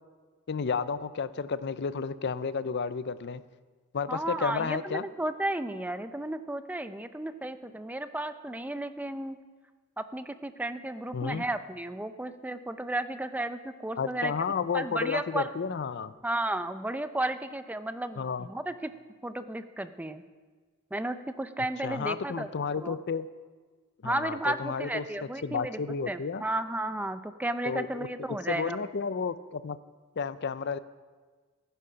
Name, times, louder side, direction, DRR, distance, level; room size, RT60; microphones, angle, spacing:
voice 1, 0.5-3.4 3.9-5.0 11.1-11.5 14.0-16.1 18.2-18.5 21.8-23.3 24.0-25.1 25.4-26.5 27.6-28.1 28.5-29.8 30.2-30.8, left 5 dB, 50° left, 15 dB, 0.5 m, -32 dB
voice 2, 4.1-9.4 10.0-14.3 14.7-15.5 16.2-18.9 19.2-20.2 20.9-22.5 22.7-23.0 24.0-25.8 26.1-28.8, right 1 dB, 5° right, 11 dB, 0.5 m, -33 dB
15.0 x 10.0 x 5.7 m, 1.4 s
head